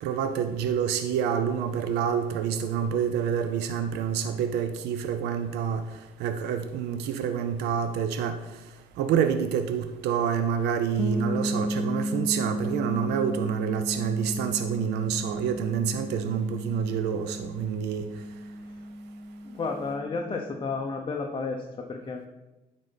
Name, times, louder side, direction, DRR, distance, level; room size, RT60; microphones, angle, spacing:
voice 1, 0.0-5.8 6.2-8.4 9.0-18.0, right 8 dB, 80° right, 0.6 m, -27 dB
sound 1, 11.0-20.7, equal, ahead, 0.4 m, -34 dB
voice 2, 19.4-22.3, left 4 dB, 30° left, 0.8 m, -32 dB
9.7 x 4.1 x 5.2 m
cardioid pair, 110°, 17 cm